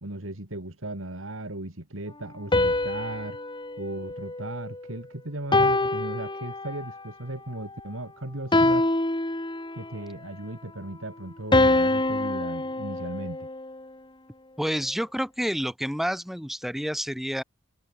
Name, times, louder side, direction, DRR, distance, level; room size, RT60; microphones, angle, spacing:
voice 1, 0.0-3.4 3.8-8.9 9.8-13.5, right 1 dB, 90° right, 3.1 m, -36 dB
sound 1, 2.5-4.9 5.5-7.0 8.5-10.0 11.5-13.8, left 2 dB, 25° left, 2.9 m, -25 dB
voice 2, 14.6-17.4, equal, ahead, 7.9 m, -29 dB
head